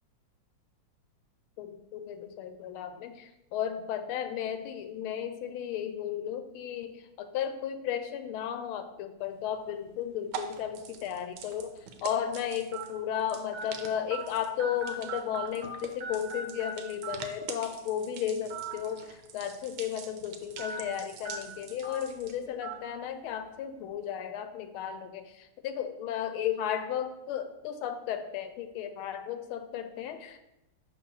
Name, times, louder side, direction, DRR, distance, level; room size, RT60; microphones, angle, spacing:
voice 1, 1.6-30.4, left 9 dB, 90° left, 8 dB, 1.5 m, -34 dB
sound 1, 9.2-22.5, right 8 dB, 85° right, 1.4 m, -46 dB
sound 2, 10.6-10.8 11.5-11.6 12.7-12.8 13.5-13.6 14.1-14.2 14.6-15.7 16.0-16.7 17.0-17.1 18.4-18.7 19.1-19.2 20.6-20.8 21.2-21.4 21.8-22.0 22.6-22.7, right 4 dB, 55° right, 1.3 m, -38 dB
6.6 x 3.0 x 5.5 m, 0.90 s
omnidirectional pair, 2.3 m